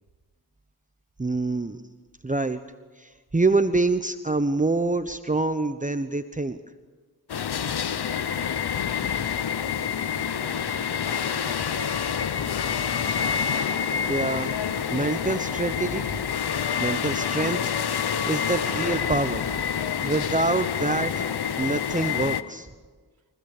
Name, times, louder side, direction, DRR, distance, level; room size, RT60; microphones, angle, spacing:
voice 1, 1.2-1.8 2.2-2.6 3.0-6.6 14.1-14.5 14.9-16.1 16.8-17.6 18.3-19.4 20.0-21.2 21.6-22.7, right 3 dB, 20° right, 10 dB, 1.0 m, -25 dB
sound 1, 7.3-22.4, left 7 dB, 75° left, 0.9 m, -27 dB
voice 2, 8.2-12.0, right 3 dB, 65° right, 3 dB, 3.2 m, -47 dB
27.5 x 16.5 x 6.7 m, 1.4 s
cardioid pair, 40°, 39 cm